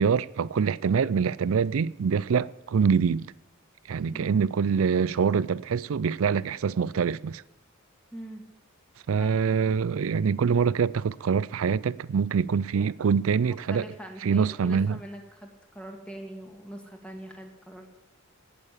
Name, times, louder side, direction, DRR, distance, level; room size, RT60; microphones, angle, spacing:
voice 1, 0.0-3.3 3.9-7.4 9.1-13.8 14.2-15.0, right 6 dB, 75° right, 0.4 m, -25 dB
voice 2, 4.1-4.4 8.1-8.5 9.1-9.4 13.7-17.9, right 1 dB, 5° left, 1.9 m, -42 dB
17.0 x 6.9 x 8.2 m
head